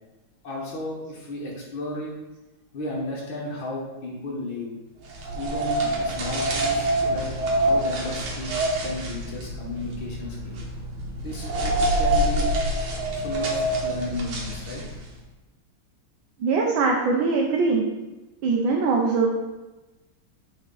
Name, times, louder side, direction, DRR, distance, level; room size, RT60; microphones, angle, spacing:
voice 1, 0.4-2.1 2.7-4.7 5.3-7.3 7.6-8.5 8.8-10.6 11.2-12.5 13.1-14.8, left 1 dB, 70° left, -5 dB, 2.4 m, -34 dB
sound 1, 5.1-15.1, right 1 dB, 85° right, 2.1 m, -26 dB
voice 2, 16.4-17.8 18.4-19.3, right 4 dB, 70° right, -1 dB, 1.6 m, -22 dB
8.3 x 5.1 x 4.1 m, 1.1 s
omnidirectional pair, 2.3 m